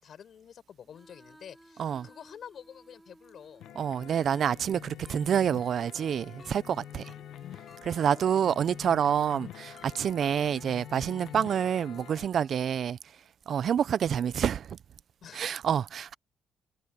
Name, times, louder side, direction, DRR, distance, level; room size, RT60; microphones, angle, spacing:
voice 1, 0.0-3.6 6.7-7.0 8.0-8.7 15.2-15.5, left 8 dB, 60° left, 6.7 m, -49 dB
Female singing, 0.8-4.6 5.8-12.5, right 1 dB, 5° right, 6.0 m, -58 dB
sound 1, 3.6-12.3, left 12 dB, 85° left, 1.1 m, -46 dB
voice 2, 3.8-7.0 7.8-13.0 13.5-14.8 15.3-16.1, right 8 dB, 60° right, 0.5 m, -28 dB
sound 2, 4.3-4.5 5.0-5.2 5.7-5.8 6.4-6.5 7.0-7.1 7.7-7.8 8.3-8.4 8.8-8.9 9.3-9.4 9.8-9.9 10.2-10.3, left 4 dB, 35° left, 6.2 m, -55 dB
cardioid pair, 90°, 0 cm